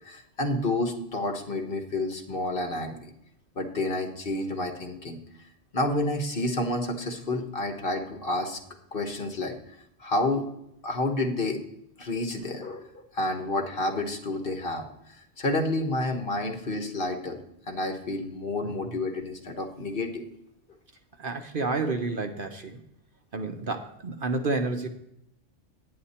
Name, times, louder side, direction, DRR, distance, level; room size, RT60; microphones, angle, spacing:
voice 1, 0.0-3.1 3.6-5.2 5.7-8.6 8.9-9.6 10.0-10.4 10.8-11.6 12.0-14.9 15.4-17.4 17.7-20.2, left 2 dB, 50° left, 5 dB, 1.3 m, -29 dB
voice 2, 18.6-18.9 21.2-22.8 23.3-24.9, right 3 dB, 50° right, 6 dB, 0.9 m, -30 dB
9.8 x 9.6 x 4.2 m, 0.77 s
omnidirectional pair, 1.3 m